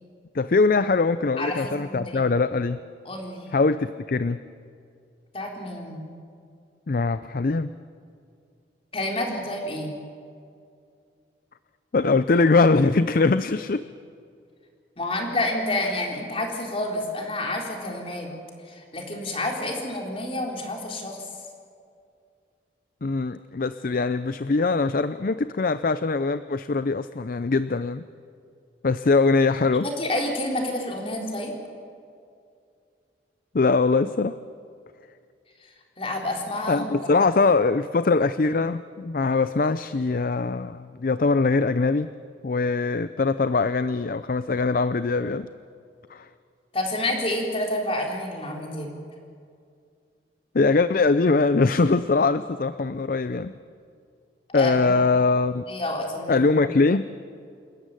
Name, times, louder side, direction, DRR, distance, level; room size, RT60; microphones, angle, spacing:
voice 1, 0.3-2.8 3.5-4.4 6.9-7.7 11.9-13.9 23.0-28.0 28.8-29.9 33.5-34.4 36.7-42.1 42.4-45.5 46.1-46.3 50.5-53.5 54.5-55.6 56.3-57.1, left 3 dB, 50° left, 13 dB, 0.5 m, -22 dB
voice 2, 1.4-2.2 3.1-3.5 5.3-6.1 8.9-9.9 15.0-18.3 18.7-21.2 29.8-31.5 36.0-37.3 46.7-48.9 54.5-54.9 55.7-56.5, left 1 dB, 30° left, 0 dB, 4.0 m, -29 dB
27.5 x 14.0 x 9.7 m, 2.3 s
head